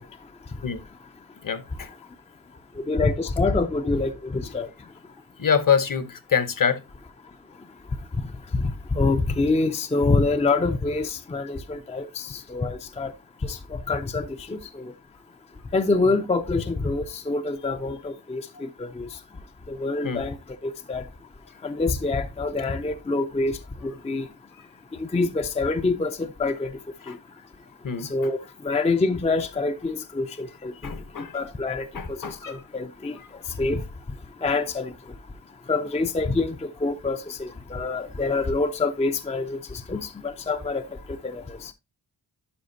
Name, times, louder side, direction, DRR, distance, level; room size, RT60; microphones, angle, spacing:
voice 1, 1.4-1.9 5.4-6.8 20.0-20.2 27.1-27.2 27.8-28.1 30.8-31.4 31.9-32.6, left 7 dB, 50° left, 0.9 m, -25 dB
voice 2, 2.8-4.7 8.5-13.1 13.4-14.6 15.7-19.1 19.7-20.3 20.6-21.0 21.6-23.6 23.8-24.3 25.0-26.7 28.1-28.4 28.6-30.7 31.3-33.1 33.6-33.8 34.4-34.9 35.7-40.8 41.2-41.7, left 3 dB, 15° left, 0.4 m, -26 dB
11.5 x 5.0 x 2.6 m
wide cardioid pair, 140°, 42 cm